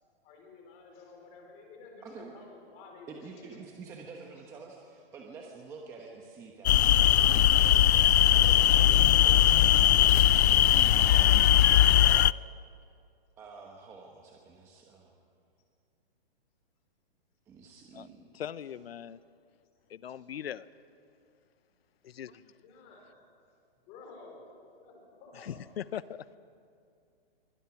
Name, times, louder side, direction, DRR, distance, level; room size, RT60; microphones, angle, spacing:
voice 1, 0.2-3.6 6.0-6.1 8.9-9.6 20.1-20.2 22.6-23.2 23.5-23.6 23.9-24.5 24.8-25.6, left 3 dB, 20° left, 2 dB, 4.2 m, -53 dB
voice 2, 2.0-2.3 3.1-7.1 7.5-7.9 8.3-12.4 13.4-15.1 17.5-18.7, right 4 dB, 10° right, 0 dB, 1.0 m, -48 dB
sound 1, 6.7-12.3, left 12 dB, 90° left, 0.5 m, -20 dB
voice 3, 18.3-19.2 19.9-20.6 22.0-22.4 25.4-26.2, left 9 dB, 70° left, 17 dB, 0.9 m, -40 dB
27.0 x 24.0 x 6.0 m, 2.4 s
hypercardioid pair, 170°, 31 cm